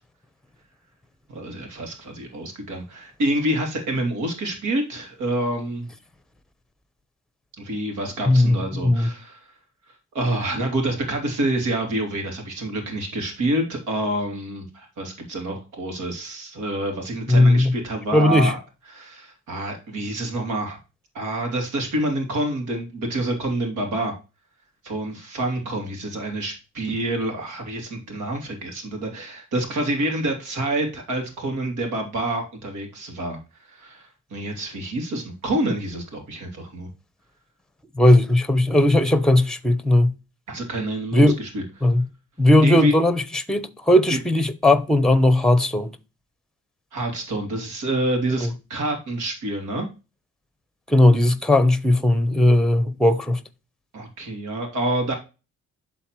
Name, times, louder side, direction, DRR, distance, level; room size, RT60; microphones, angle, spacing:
voice 1, 1.3-5.9 7.6-9.4 10.1-18.6 18.9-20.8 21.1-24.2 24.8-33.4 33.7-36.9 40.5-41.6 42.6-42.9 44.1-44.2 46.9-49.9 53.9-55.1, right 1 dB, 80° right, 2.8 m, -27 dB
voice 2, 8.3-9.1 17.3-17.7 18.1-18.5 38.0-40.1 41.1-41.4 41.8-42.0 42.4-45.9 50.9-53.4, left 1 dB, ahead, 0.9 m, -17 dB
11.0 x 4.0 x 3.1 m
cardioid pair, 90°, 30 cm